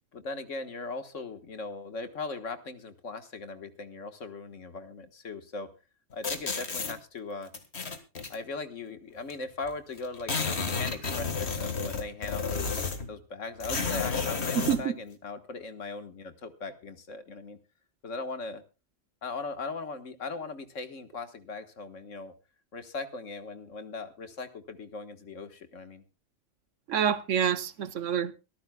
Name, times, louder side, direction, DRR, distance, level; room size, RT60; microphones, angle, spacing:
voice 1, 0.1-5.7 6.1-7.5 8.3-12.7 13.1-17.6 18.0-18.6 19.2-22.3 22.7-26.0, left 3 dB, 80° left, 1.8 m, -39 dB
sound 1, 6.2-6.9 7.5-8.4 9.3-9.4 9.6-9.7 10.0-13.1 13.6-14.8, left 4 dB, 60° left, 1.9 m, -31 dB
voice 2, 14.5-14.9 26.9-28.3, right 8 dB, 75° right, 1.2 m, -27 dB
23.5 x 14.0 x 2.3 m
omnidirectional pair, 1.3 m